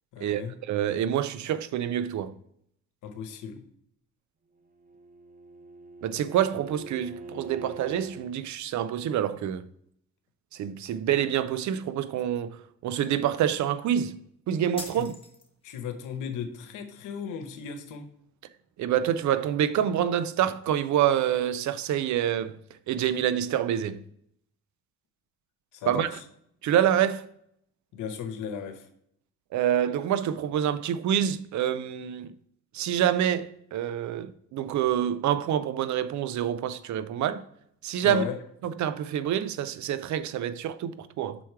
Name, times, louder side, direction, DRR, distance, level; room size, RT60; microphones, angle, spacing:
voice 1, 0.1-0.5 3.0-3.6 15.0-15.1 15.6-18.0 25.7-26.2 27.9-28.8 38.0-38.4, left 7 dB, 90° left, 1.0 m, -35 dB
voice 2, 0.7-2.3 6.0-9.7 10.6-12.6 12.8-14.2 14.5-15.1 18.8-22.6 22.9-24.0 25.9-26.1 26.6-27.3 29.5-32.3 32.7-37.4 37.8-38.2 38.6-41.4, right 10 dB, 70° right, 0.6 m, -27 dB
Bowed string instrument, 4.6-8.4, right 2 dB, 25° right, 0.9 m, -44 dB
sound 1, 14.8-15.8, left 3 dB, 15° left, 1.4 m, -42 dB
6.2 x 4.7 x 4.5 m
cardioid pair, 90°, 30 cm